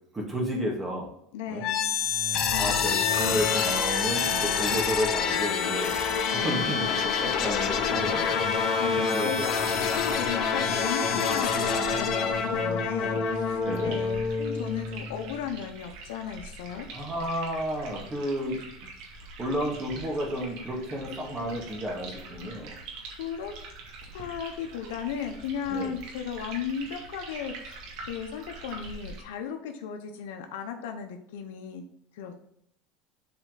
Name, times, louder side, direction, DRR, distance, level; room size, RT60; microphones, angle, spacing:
voice 1, 0.1-1.1 1.5-1.6 2.5-5.9 6.3-9.5 13.6-14.0 16.9-18.6 19.4-22.8 25.7-26.0, equal, 20° right, -1 dB, 2.2 m, -32 dB
voice 2, 1.3-2.0 2.4-3.4 5.6-5.8 6.3-6.6 8.8-16.9 22.7-22.9 23.2-23.5 24.1-27.8 28.1-31.8 32.1-32.5, left 7 dB, 85° left, 5 dB, 0.9 m, -36 dB
sound 1, 1.6-15.5, left 6 dB, 45° left, 1.1 m, -27 dB
sound 2, 12.0-29.2, right 3 dB, 70° right, 2.2 m, -44 dB
7.8 x 4.4 x 3.9 m, 0.73 s
supercardioid pair, 130°, 0 cm